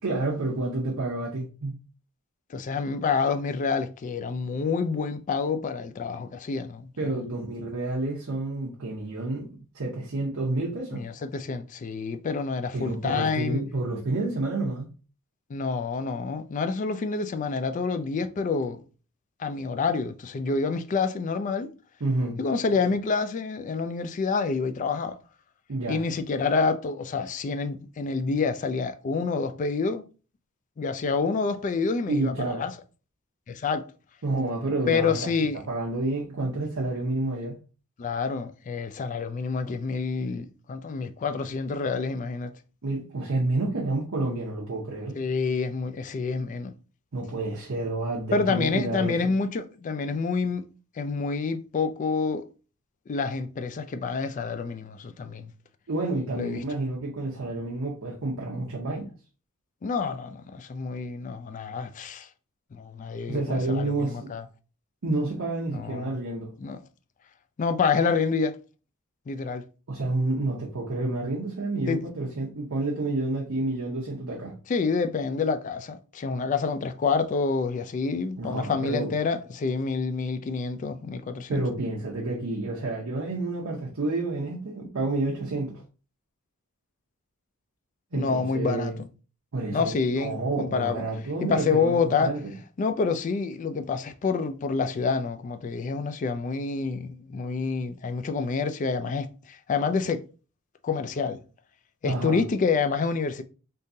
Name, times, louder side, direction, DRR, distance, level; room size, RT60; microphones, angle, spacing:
voice 1, 0.0-1.7 7.0-9.5 9.7-11.0 12.7-14.9 22.0-22.4 25.7-26.0 32.1-32.7 34.2-35.3 35.7-37.6 42.8-45.2 47.1-49.3 55.9-59.1 63.3-64.3 65.0-66.5 69.9-74.6 78.4-79.1 81.5-85.8 88.1-89.0 89.5-92.5 102.1-102.4, right 2 dB, 70° right, 0.7 m, -29 dB
voice 2, 2.5-7.2 10.9-13.6 15.5-18.8 19.4-21.7 22.4-25.2 25.9-30.0 30.8-32.7 33.5-33.9 34.9-35.6 38.0-42.5 45.2-46.7 48.3-50.6 51.0-52.5 53.1-55.5 56.3-56.6 59.8-62.3 62.7-64.5 65.7-66.2 66.6-66.8 67.6-68.6 69.3-69.6 71.9-72.0 74.7-81.6 88.1-88.9 89.7-91.1 91.4-92.3 92.8-100.2 100.8-101.4 102.0-103.4, left 4 dB, 35° left, 0.3 m, -28 dB
3.6 x 2.7 x 2.6 m
head